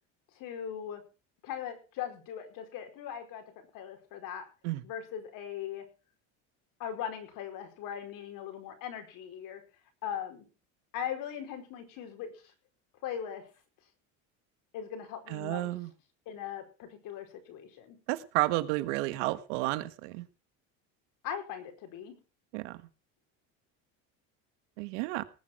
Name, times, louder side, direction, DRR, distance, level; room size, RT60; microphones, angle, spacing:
voice 1, 0.3-1.0 1.4-3.4 3.7-4.5 4.8-5.8 6.8-9.6 10.0-10.4 10.9-12.4 13.0-13.4 14.7-15.7 16.2-18.0 21.2-22.1, left 9 dB, 65° left, 6 dB, 5.0 m, -39 dB
voice 2, 15.3-15.9 18.1-20.2 22.5-22.7 24.8-25.2, right 18 dB, 85° right, 14 dB, 1.4 m, -31 dB
19.0 x 7.8 x 6.0 m, 0.35 s
supercardioid pair, 110°, 35 cm